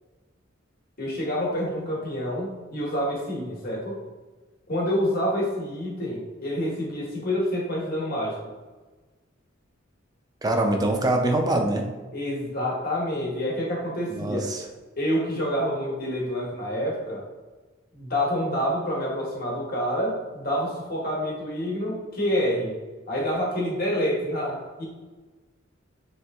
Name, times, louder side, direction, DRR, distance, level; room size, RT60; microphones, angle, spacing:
voice 1, 1.0-4.0 4.7-8.3 12.1-14.5 15.0-17.2 17.9-22.8 23.1-24.8, equal, 50° left, -3 dB, 1.0 m, -27 dB
voice 2, 10.4-11.8 14.1-14.6, right 1 dB, 20° right, 3 dB, 0.4 m, -24 dB
3.2 x 2.9 x 3.4 m, 1.3 s
head